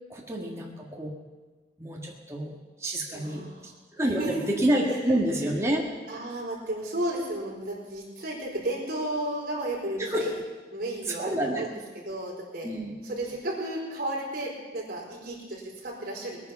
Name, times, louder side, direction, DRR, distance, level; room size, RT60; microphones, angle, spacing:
voice 1, 0.1-1.1 1.8-3.5 3.9-5.8 10.1-10.3 11.1-11.7 12.6-13.0, right 1 dB, 15° right, -2 dB, 1.8 m, -28 dB
voice 2, 3.1-3.7 4.0-4.6 4.9-5.1 6.1-10.3 10.7-12.7 13.0-16.4, right 1 dB, 50° right, -3 dB, 4.5 m, -33 dB
20.0 x 9.8 x 5.9 m, 1.3 s
head